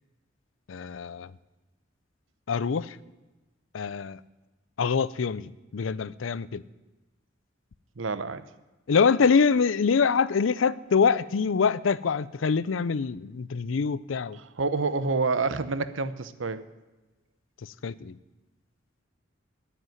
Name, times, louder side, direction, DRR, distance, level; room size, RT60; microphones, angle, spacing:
voice 1, 0.7-1.3 2.5-3.0 3.7-4.2 4.8-6.6 8.9-14.4 17.8-18.2, left 5 dB, 75° left, 19 dB, 0.5 m, -25 dB
voice 2, 8.0-8.4 14.6-16.6, right 4 dB, 75° right, 14 dB, 0.8 m, -28 dB
11.0 x 9.7 x 9.3 m, 1.1 s
head